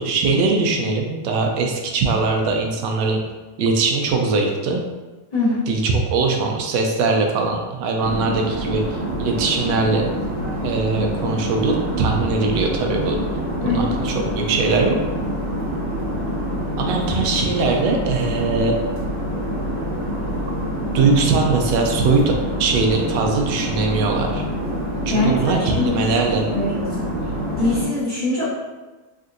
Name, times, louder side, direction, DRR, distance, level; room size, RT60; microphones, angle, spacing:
voice 1, 0.0-3.2 3.6-4.8 5.7-10.1 10.6-13.2 13.6-15.0 16.8-18.8 20.9-22.3 22.6-24.4 25.1-26.5, right 3 dB, 90° right, 2 dB, 1.2 m, -21 dB
voice 2, 5.3-5.6 13.6-13.9 25.1-26.2 26.5-27.1 27.6-28.5, left 2 dB, 30° left, -12 dB, 0.8 m, -23 dB
sound 1, 8.0-27.8, equal, 60° right, 1.0 m, -26 dB
3.6 x 2.5 x 2.5 m, 1.2 s
omnidirectional pair, 1.8 m